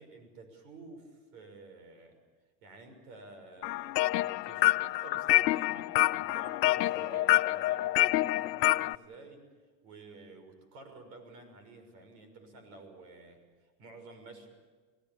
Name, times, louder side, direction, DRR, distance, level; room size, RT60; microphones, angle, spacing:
voice 1, 0.0-2.2 2.6-9.4 9.8-13.4 13.6-14.5, right 3 dB, 60° right, 7 dB, 6.4 m, -51 dB
sound 1, 3.6-9.0, left 17 dB, 85° left, 0.7 m, -27 dB
28.5 x 17.5 x 7.2 m, 1.4 s
supercardioid pair, 135°, 49 cm